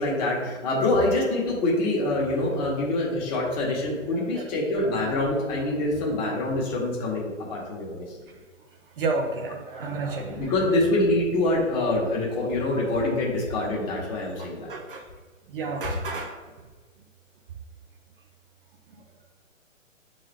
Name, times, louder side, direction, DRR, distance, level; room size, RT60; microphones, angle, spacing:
voice 1, 0.0-8.0 10.2-14.7, left 2 dB, 30° left, -3 dB, 1.8 m, -25 dB
voice 2, 4.1-4.5 9.0-10.5 14.4-15.0 15.5-16.3, right 3 dB, 45° right, 2 dB, 0.8 m, -31 dB
8.3 x 3.9 x 3.4 m, 1.4 s
figure-of-eight pair, 125°, 39 cm